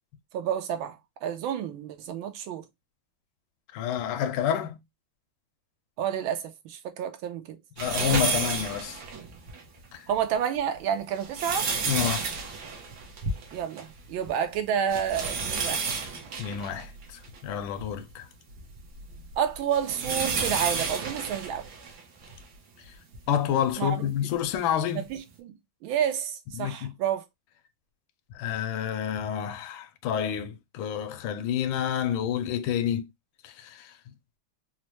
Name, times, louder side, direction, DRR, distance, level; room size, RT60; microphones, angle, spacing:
voice 1, 0.3-2.6 6.0-7.6 10.1-11.7 13.5-15.9 19.4-21.7 23.8-24.3 24.9-25.6 25.8-27.2, right 8 dB, 75° right, 1.4 m, -30 dB
voice 2, 3.7-4.8 7.8-9.0 9.9-10.0 11.9-12.2 16.4-16.9 17.4-18.3 23.3-25.0 26.6-26.9 28.3-33.0 33.4-33.9, left 9 dB, 75° left, 1.3 m, -28 dB
sound 1, 7.8-9.6 10.1-10.2 11.0-14.0 14.2-14.3 14.9-17.9 18.5-22.4 23.1-23.2 24.5-24.6, right 4 dB, 60° right, 1.2 m, -31 dB
4.2 x 2.1 x 2.9 m
omnidirectional pair, 2.4 m